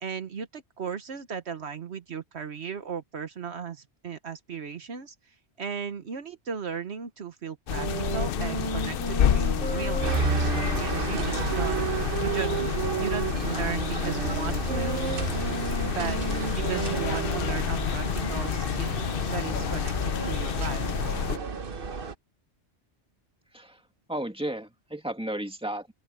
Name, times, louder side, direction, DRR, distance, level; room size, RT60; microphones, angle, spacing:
voice 1, 0.0-11.9 12.2-15.2 15.8-19.0 19.3-20.9, right 6 dB, 70° right, 1.3 m, -36 dB
sound 1, 7.7-21.4, left 10 dB, 60° left, 0.7 m, -29 dB
sound 2, 7.7-17.7, right 6 dB, 85° right, 1.7 m, -34 dB
sound 3, 10.0-22.1, right 5 dB, 55° right, 1.2 m, -32 dB
voice 2, 24.1-25.9, right 1 dB, 5° right, 2.3 m, -33 dB
open air
omnidirectional pair, 1.2 m